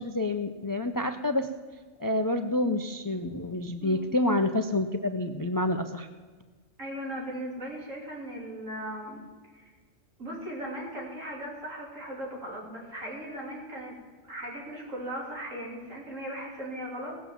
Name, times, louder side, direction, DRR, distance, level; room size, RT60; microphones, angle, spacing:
voice 1, 0.0-1.5 2.0-6.1, left 1 dB, 30° left, 8 dB, 0.3 m, -28 dB
voice 2, 3.8-4.1 6.8-9.2 9.5-9.7 10.2-14.0 14.3-17.3, equal, 80° right, -3 dB, 3.7 m, -38 dB
18.0 x 7.2 x 7.3 m, 1.4 s
omnidirectional pair, 1.3 m